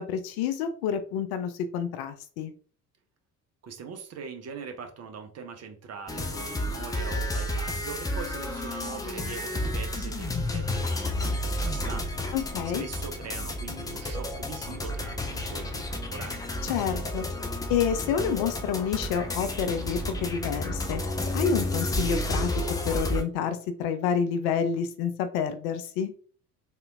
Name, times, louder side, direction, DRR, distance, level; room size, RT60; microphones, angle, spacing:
voice 1, 0.0-2.5 12.3-12.8 16.6-17.3 17.7-21.0 21.3-22.5 22.8-26.1, left 7 dB, 55° left, 9 dB, 0.6 m, -28 dB
voice 2, 3.6-16.5, right 5 dB, 35° right, 5 dB, 0.7 m, -42 dB
sound 1, 6.1-23.2, left 1 dB, 10° left, 0.3 m, -31 dB
3.4 x 2.8 x 2.6 m, 0.43 s
figure-of-eight pair, 55°, 48 cm